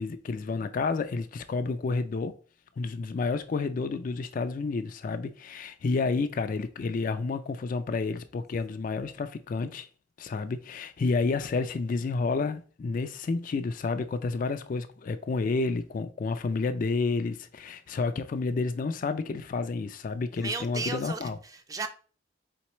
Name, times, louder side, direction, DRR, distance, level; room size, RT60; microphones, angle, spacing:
voice 1, 0.0-2.4 2.8-9.9 10.2-21.4, left 4 dB, 45° left, 0.3 m, -30 dB
voice 2, 20.4-21.9, right 4 dB, 20° right, 0.5 m, -35 dB
4.3 x 3.9 x 3.0 m
head